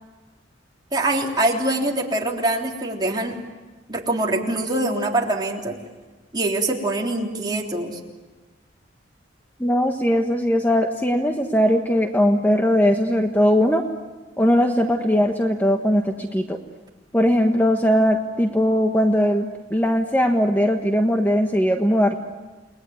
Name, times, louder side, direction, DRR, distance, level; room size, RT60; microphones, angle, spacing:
voice 1, 0.9-3.4 3.9-5.8 6.3-8.0, right 2 dB, 25° right, -1 dB, 3.5 m, -24 dB
voice 2, 9.6-13.8 14.4-16.6 17.1-22.1, equal, 10° left, 3 dB, 1.3 m, -19 dB
30.0 x 20.0 x 9.6 m, 1.3 s
head